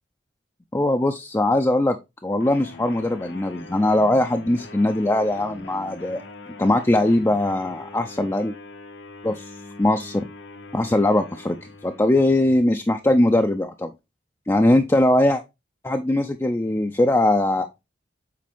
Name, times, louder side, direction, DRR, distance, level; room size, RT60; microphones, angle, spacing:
voice 1, 0.7-2.0 2.2-6.2 6.6-8.5 9.2-9.5 9.8-10.3 10.7-11.6 11.8-13.9 14.5-15.4 15.8-17.7, left 1 dB, 15° left, 5 dB, 0.4 m, -20 dB
sound 1, 2.4-12.6, left 3 dB, 75° left, 1.0 m, -42 dB
7.6 x 4.3 x 3.4 m, 0.24 s
head